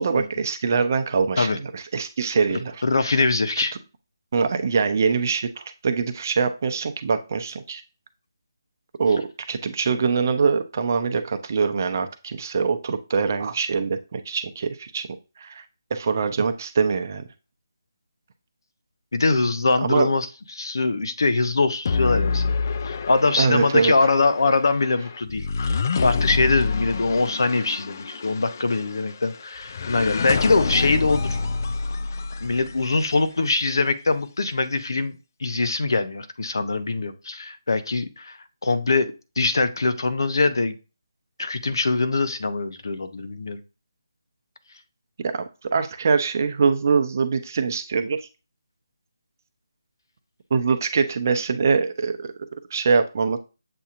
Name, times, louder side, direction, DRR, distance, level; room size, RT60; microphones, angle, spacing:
voice 1, 0.0-2.8 4.3-7.8 9.0-15.6 15.9-17.2 19.8-20.1 23.4-23.9 45.2-48.2 50.5-53.4, right 5 dB, 45° right, 8 dB, 0.7 m, -23 dB
voice 2, 2.5-3.7 9.9-10.0 19.1-20.3 20.5-22.4 22.8-31.4 32.4-38.4 38.6-40.7 41.4-43.6, left 3 dB, 65° left, 11 dB, 0.8 m, -23 dB
sound 1, 21.9-33.2, left 4 dB, 45° left, 0.3 m, -28 dB
7.6 x 2.7 x 2.5 m, 0.30 s
figure-of-eight pair, 155°, 2 cm